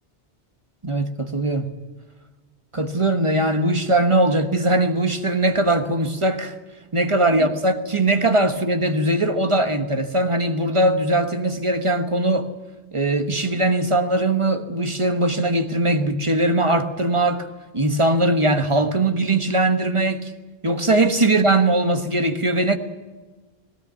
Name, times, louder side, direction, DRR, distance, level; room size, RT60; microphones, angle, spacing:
voice 1, 0.8-1.7 2.7-6.5 6.9-12.5 12.9-17.5 17.7-20.3 20.6-22.8, right 2 dB, 30° right, 1.4 m, -20 dB
19.0 x 17.0 x 9.2 m
omnidirectional pair, 1.1 m